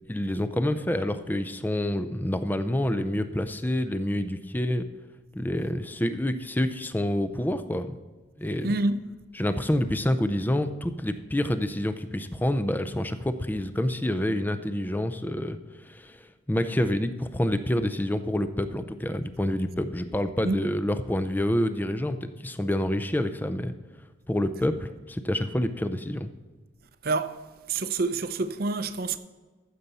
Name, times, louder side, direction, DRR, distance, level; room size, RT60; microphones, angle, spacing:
voice 1, 0.1-4.9 5.3-8.0 8.4-8.8 9.4-23.7 24.3-26.3, left 1 dB, 10° left, 0.4 m, -28 dB
voice 2, 8.6-9.1 20.4-20.6 27.0-27.4 27.7-29.2, right 3 dB, 50° right, 0.6 m, -27 dB
14.5 x 6.7 x 4.1 m
head